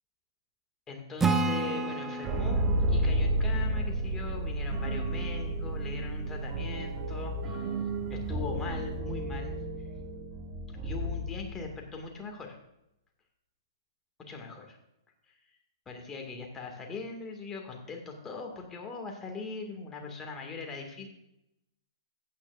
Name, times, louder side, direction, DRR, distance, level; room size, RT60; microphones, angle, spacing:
voice 1, 0.9-7.8 8.1-9.6 10.8-12.6 14.3-14.8 15.9-21.1, left 4 dB, 15° left, 2 dB, 2.1 m, -40 dB
Acoustic guitar / Strum, 1.2-4.7, right 3 dB, 10° right, 0.7 m, -32 dB
sound 1, 2.2-11.9, right 1 dB, 30° right, 1.2 m, -31 dB
14.5 x 9.5 x 2.6 m, 0.85 s
hypercardioid pair, 120°, 2 cm